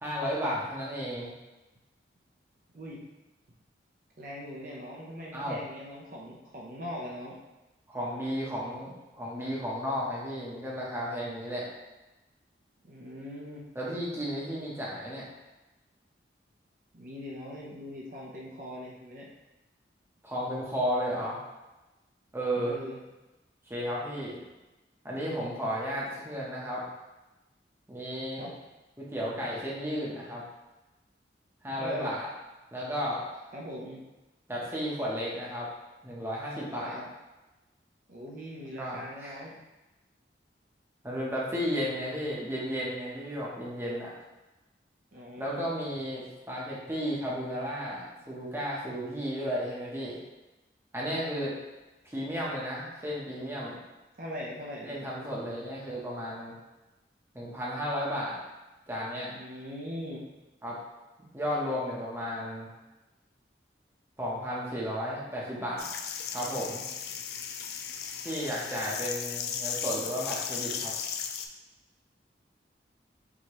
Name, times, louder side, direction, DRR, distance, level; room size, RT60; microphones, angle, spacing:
voice 1, 0.0-1.3 5.3-5.6 7.9-11.7 13.7-15.3 20.2-21.4 22.3-22.8 23.7-24.4 25.0-26.8 27.9-28.5 29.0-30.4 31.6-32.3 32.7-33.4 34.5-35.7 36.0-37.0 38.8-39.4 41.0-44.1 45.4-50.2 50.9-51.5 52.0-53.8 54.8-56.5 57.3-58.4 58.9-59.3 60.6-60.8 61.3-62.7 64.2-65.9 66.3-66.9 68.2-70.9, equal, 15° right, -5 dB, 0.7 m, -33 dB
voice 2, 4.2-7.4 12.8-13.6 16.9-19.3 22.5-23.0 28.4-28.5 31.8-32.1 33.5-34.0 36.7-37.1 38.1-39.5 45.1-45.7 51.1-51.5 54.2-55.1 59.3-60.2, left 1 dB, 50° right, -3 dB, 0.6 m, -41 dB
sound 1, 65.8-71.5, left 7 dB, 60° left, 0.3 m, -36 dB
4.7 x 2.8 x 2.9 m, 1.1 s
head